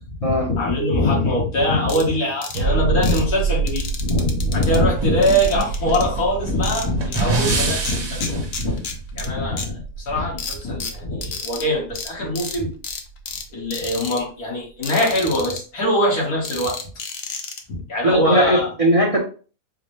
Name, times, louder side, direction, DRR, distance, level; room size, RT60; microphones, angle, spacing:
voice 1, 0.1-8.8 9.1-12.7 13.5-16.8 17.7-18.7, left 1 dB, 80° left, 2.1 m, -22 dB
sound 1, 1.9-2.0 2.4-2.6 3.0-3.2 3.7-4.8 5.2-6.0 6.6-7.2 7.5-9.3 9.6-9.7 10.4-11.6 12.0-12.1 12.4-12.6 12.8-13.4 13.7-14.2 14.8-15.6 16.5-17.6, left 5 dB, 55° left, 0.7 m, -31 dB
sound 2, 2.5-13.9 14.2-14.3, right 4 dB, 90° right, 1.2 m, -28 dB
sound 3, 4.6-8.5, right 3 dB, 50° right, 1.3 m, -26 dB
voice 2, 18.0-19.2, right 1 dB, 30° right, 0.7 m, -18 dB
4.8 x 2.2 x 3.2 m
omnidirectional pair, 1.5 m